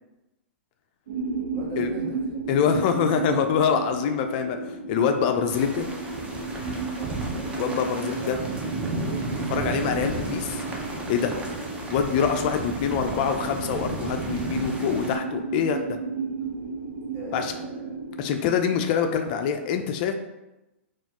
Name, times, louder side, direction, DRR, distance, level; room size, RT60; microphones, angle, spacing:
sound 1, 1.1-19.1, right 4 dB, 75° right, 0.8 m, -34 dB
voice 1, 1.5-2.7 6.9-7.6 8.0-9.2 9.6-10.1 12.1-12.4 17.1-17.9, right 2 dB, 40° right, -3 dB, 1.2 m, -41 dB
voice 2, 2.5-5.9 7.6-8.4 9.5-10.6 11.1-11.3 11.9-16.0 17.3-17.5 18.2-20.1, left 7 dB, 45° left, 6 dB, 0.3 m, -25 dB
sound 2, 5.5-15.2, right 2 dB, 15° right, 0.5 m, -33 dB
4.1 x 2.3 x 2.9 m, 0.99 s
hypercardioid pair, 125°, 7 cm